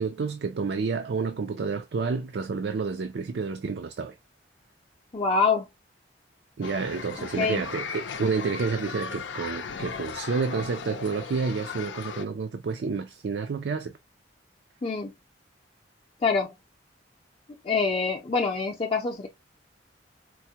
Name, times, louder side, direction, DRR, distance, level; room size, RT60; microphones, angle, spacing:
voice 1, 0.0-4.1 6.6-13.9, right 4 dB, 65° right, 0.4 m, -29 dB
voice 2, 5.1-5.7 7.2-7.6 14.8-15.1 16.2-16.5 17.6-19.3, left 4 dB, 30° left, 0.5 m, -25 dB
sound 1, 6.6-12.3, left 6 dB, 80° left, 0.5 m, -37 dB
4.5 x 2.1 x 2.8 m
head